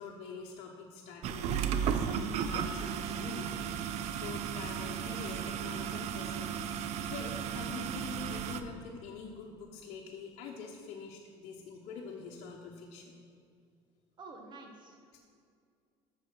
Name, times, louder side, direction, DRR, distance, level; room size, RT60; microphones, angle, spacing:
voice 1, 0.0-6.7 7.1-13.2 15.1-15.2, left 5 dB, 65° left, -2 dB, 1.1 m, -45 dB
sound 1, 1.2-8.6, right 8 dB, 60° right, 0.6 m, -35 dB
voice 2, 14.2-15.2, right 3 dB, 35° right, 3 dB, 1.6 m, -50 dB
7.7 x 6.9 x 6.3 m, 2.3 s
supercardioid pair, 110°, 13 cm